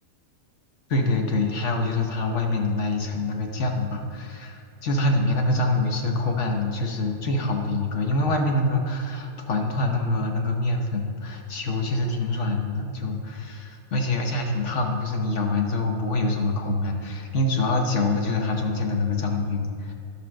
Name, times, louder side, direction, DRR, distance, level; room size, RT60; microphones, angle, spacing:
voice 1, 0.9-19.9, left 2 dB, 55° left, 2 dB, 1.4 m, -25 dB
11.5 x 5.3 x 6.3 m, 2.2 s
omnidirectional pair, 1.5 m